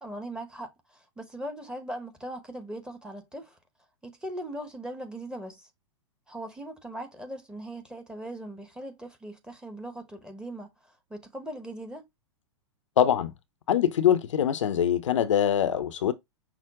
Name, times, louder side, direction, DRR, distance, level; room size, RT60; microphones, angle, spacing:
voice 1, 0.0-3.6 4.0-5.7 6.3-10.7 11.1-12.0, right 1 dB, 5° right, 0.9 m, -39 dB
voice 2, 13.0-13.3 13.7-16.1, left 10 dB, 70° left, 0.5 m, -23 dB
5.8 x 2.1 x 3.5 m
figure-of-eight pair, 100°, 16 cm